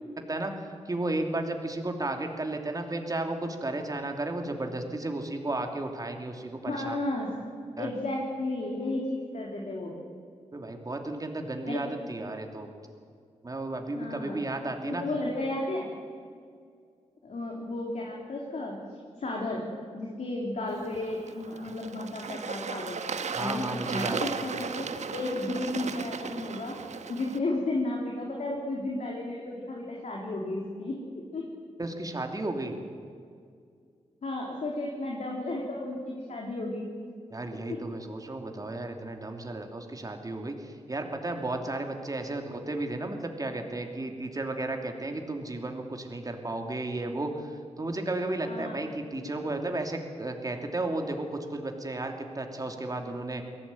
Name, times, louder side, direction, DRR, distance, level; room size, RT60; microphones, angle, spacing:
voice 1, 0.8-7.0 7.8-7.9 10.5-12.7 13.4-15.0 23.3-24.2 31.8-32.8 37.3-53.4, right 2 dB, 30° right, 4 dB, 2.8 m, -33 dB
voice 2, 6.6-7.3 7.8-9.9 11.7-11.9 13.9-14.4 14.8-15.9 17.2-18.8 19.2-19.6 19.9-23.0 23.4-26.8 27.1-31.0 31.3-31.4 34.2-36.8 37.7-37.8 48.4-48.8, left 2 dB, 75° left, -2 dB, 3.5 m, -33 dB
Bird / Water, 20.7-27.4, right 5 dB, 75° right, 1.3 m, -36 dB
22.5 x 17.0 x 9.3 m, 2.2 s
wide cardioid pair, 95°, 12 cm